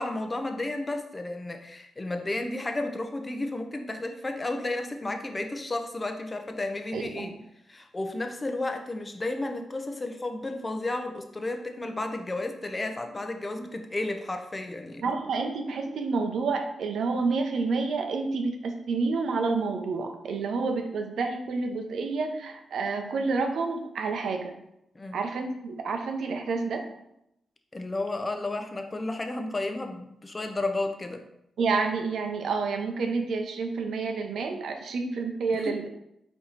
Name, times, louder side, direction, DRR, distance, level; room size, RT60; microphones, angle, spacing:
voice 1, 0.0-7.3 7.7-15.1 24.9-25.2 27.7-31.2 35.5-35.8, left 2 dB, 30° left, 5 dB, 0.6 m, -32 dB
voice 2, 6.9-7.3 15.0-24.6 25.1-26.8 31.6-35.9, right 4 dB, 75° right, 5 dB, 0.6 m, -29 dB
4.4 x 2.9 x 4.0 m, 0.82 s
cardioid pair, 65°, 0 cm